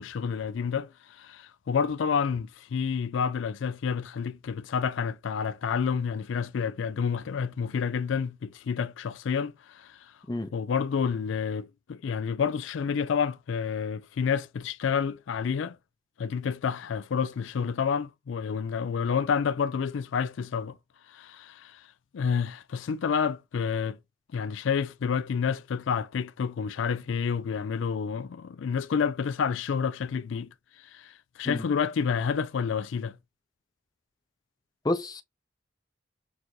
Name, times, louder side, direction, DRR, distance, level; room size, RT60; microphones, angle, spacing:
voice 1, 0.0-10.1 10.5-15.8 16.2-20.8 21.1-21.9 22.1-24.0 24.3-33.2, left 6 dB, 80° left, 0.4 m, -29 dB
voice 2, 34.8-35.2, left 1 dB, 20° left, 0.5 m, -29 dB
6.0 x 2.6 x 2.3 m
head